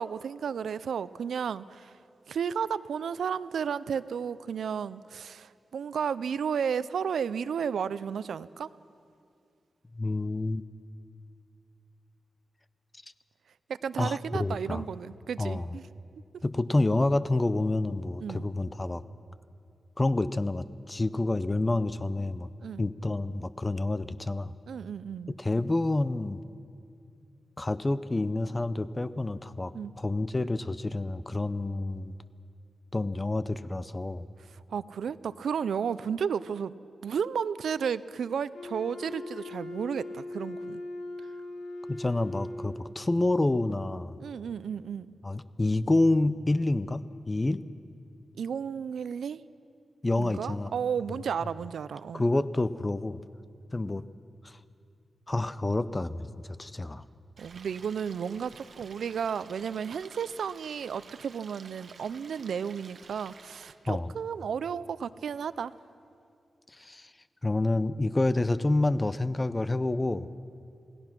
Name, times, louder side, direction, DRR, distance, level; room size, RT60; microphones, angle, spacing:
voice 1, 0.0-2.0 2.3-8.7 13.7-15.9 16.3-16.4 18.2-18.5 22.6-22.9 24.7-25.3 29.7-29.9 34.5-36.7 37.0-40.8 44.2-45.1 48.3-49.4 50.2-52.2 57.4-65.7, right 7 dB, 90° right, 16 dB, 0.5 m, -33 dB
voice 2, 10.0-10.6 14.0-14.8 15.4-15.6 16.4-19.0 20.0-22.5 22.8-24.5 25.4-26.4 27.6-29.7 30.0-32.1 32.9-34.3 41.9-44.2 45.2-47.6 50.0-50.7 52.1-53.2 53.7-54.0 54.4-54.5 55.3-57.0 63.9-64.1 66.8-67.1 67.4-70.3, left 2 dB, 20° left, 14 dB, 0.5 m, -28 dB
Wind instrument woodwind instrument, 38.5-42.8, left 2 dB, 85° left, 3.8 m, -39 dB
Stream, 57.4-63.7, right 5 dB, 55° right, 1.1 m, -52 dB
27.5 x 18.0 x 6.0 m, 2.4 s
wide cardioid pair, 145°, 0 cm